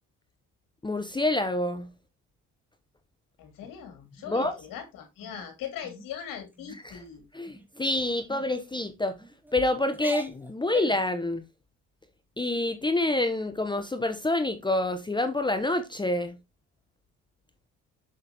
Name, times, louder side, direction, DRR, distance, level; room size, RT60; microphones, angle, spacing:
voice 1, 0.8-1.9 4.3-4.5 6.8-7.0 7.3-9.2 9.5-11.4 12.4-16.4, left 2 dB, 15° left, 0.8 m, -27 dB
voice 2, 3.4-7.2, left 9 dB, 80° left, 2.7 m, -40 dB
sound 1, 4.2-4.8 5.2-5.5 5.8-6.1 6.5-6.8 7.4-7.8 8.3-8.5 9.2-9.6 9.9-11.1, right 1 dB, 5° right, 1.5 m, -43 dB
6.9 x 6.0 x 2.9 m
cardioid pair, 80°, 33 cm